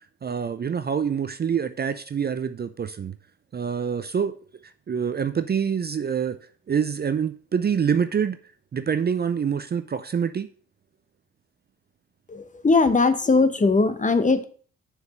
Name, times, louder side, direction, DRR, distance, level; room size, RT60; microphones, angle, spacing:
voice 1, 0.0-3.1 3.5-4.4 4.6-6.4 6.7-8.4 8.7-10.5, right 7 dB, 30° right, 11 dB, 0.6 m, -26 dB
voice 2, 12.3-14.5, left 3 dB, 20° left, 11 dB, 1.0 m, -20 dB
6.6 x 4.7 x 6.3 m, 0.43 s
hypercardioid pair, 50°, 34 cm